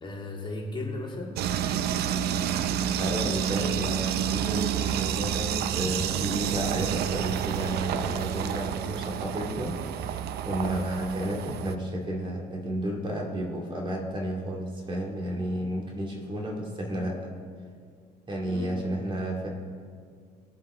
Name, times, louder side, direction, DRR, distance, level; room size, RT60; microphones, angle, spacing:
voice 1, 0.0-1.4 4.9-5.0 15.3-15.7 18.5-18.9, left 2 dB, 30° left, -1 dB, 1.9 m, -36 dB
sound 1, 1.4-11.8, right 9 dB, 70° right, 0.5 m, -29 dB
voice 2, 3.0-17.3 18.3-19.5, right 1 dB, 30° right, -1 dB, 2.2 m, -32 dB
20.0 x 7.5 x 3.7 m, 2.1 s
cardioid pair, 110°, 17 cm